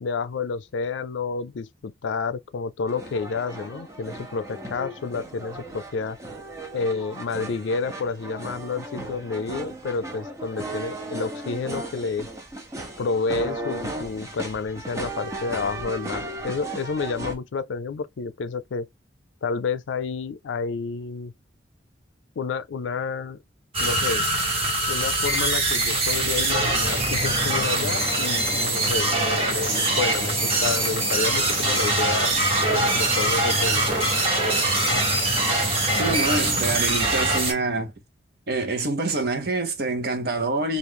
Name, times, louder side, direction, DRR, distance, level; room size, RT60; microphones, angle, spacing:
voice 1, 0.0-6.2 6.7-12.3 13.0-18.9 19.4-21.3 22.4-23.4 23.8-24.3 24.9-32.3 32.7-33.8, left 4 dB, 85° left, 0.4 m, -30 dB
sound 1, 2.9-17.3, right 1 dB, 15° right, 0.7 m, -36 dB
sound 2, 23.7-37.5, right 2 dB, 30° right, 1.0 m, -23 dB
sound 3, 26.8-36.8, left 2 dB, 40° left, 0.7 m, -32 dB
voice 2, 36.0-37.9 38.5-40.8, right 2 dB, 55° right, 0.8 m, -26 dB
3.1 x 2.4 x 3.4 m
head